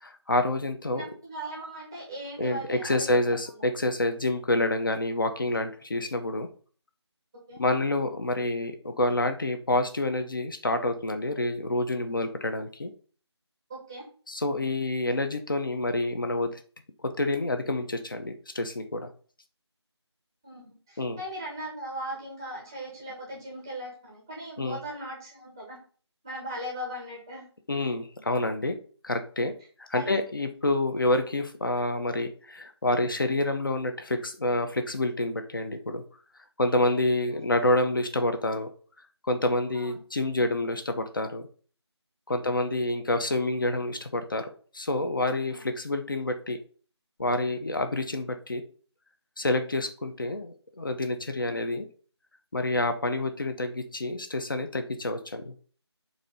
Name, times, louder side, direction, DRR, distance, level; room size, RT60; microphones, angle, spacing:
voice 1, 0.0-1.1 2.4-6.5 7.6-12.9 14.3-16.6 17.2-19.1 21.0-21.2 24.6-24.8 27.7-28.7 29.0-29.5 29.8-36.0 36.6-38.7 39.2-41.4 42.3-44.5 44.7-46.6 47.2-48.6 49.4-51.9 52.5-55.5, left 2 dB, 50° left, 7 dB, 0.8 m, -28 dB
voice 2, 0.9-3.3 7.5-7.6 13.7-14.0 20.4-25.8 26.2-27.5 29.9-30.1 37.3-37.5 39.7-40.0 42.3-42.4 45.5-45.6 51.4-51.5, right 1 dB, 10° right, -3 dB, 0.7 m, -38 dB
7.2 x 2.8 x 5.3 m, 0.42 s
figure-of-eight pair, 170°, 15 cm